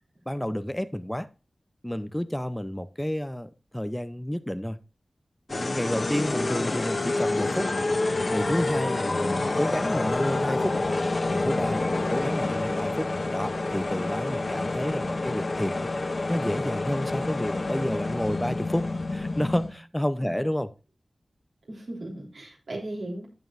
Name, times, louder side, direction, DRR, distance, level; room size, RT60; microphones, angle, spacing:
voice 1, 0.3-1.3 1.8-4.8 5.5-7.7 8.3-10.7 11.3-15.9 16.3-20.7, equal, 10° left, 0.5 m, -30 dB
sound 1, 5.5-19.7, left 2 dB, 60° left, 1.2 m, -28 dB
voice 2, 21.7-23.3, right 1 dB, 80° right, 3.3 m, -37 dB
15.0 x 5.3 x 2.4 m
cardioid pair, 45°, 0 cm